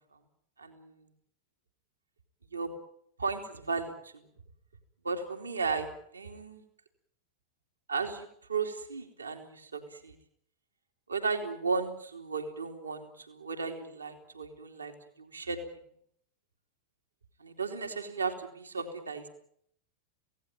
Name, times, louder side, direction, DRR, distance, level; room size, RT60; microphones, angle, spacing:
voice 1, 0.6-0.9 2.5-2.7 3.2-4.1 5.0-5.9 6.1-6.6 7.9-10.1 11.1-14.9 15.2-15.6 17.4-19.3, right 4 dB, 75° right, 4 dB, 3.1 m, -35 dB
26.5 x 17.5 x 9.0 m, 0.70 s
figure-of-eight pair, 90°, 0 cm